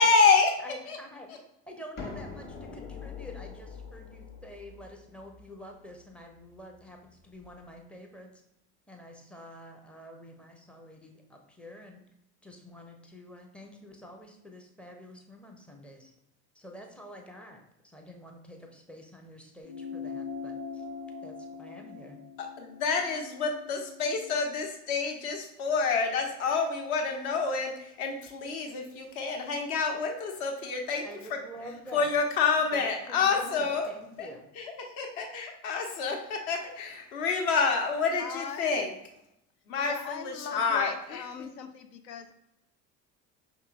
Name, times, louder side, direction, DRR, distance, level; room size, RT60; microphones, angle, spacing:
voice 1, 0.0-0.5 0.9-1.0 1.3-1.4 22.4-31.0 31.9-33.9 34.2-34.3 34.6-38.9 39.7-41.5, left 4 dB, 60° left, 2 dB, 1.0 m, -28 dB
voice 2, 0.6-1.4 1.7-8.3 8.9-12.0 12.4-16.1 16.5-20.8 21.2-22.2 31.0-32.1 32.7-34.4, equal, 5° left, 2 dB, 0.4 m, -47 dB
sound 1, 2.0-7.6, left 5 dB, 20° left, 0.8 m, -44 dB
sound 2, 19.6-24.5, left 5 dB, 40° left, 1.1 m, -42 dB
voice 3, 38.2-38.9 39.9-42.3, left 6 dB, 80° left, 8 dB, 0.6 m, -40 dB
5.4 x 3.6 x 2.4 m, 0.83 s
figure-of-eight pair, 65°, 49 cm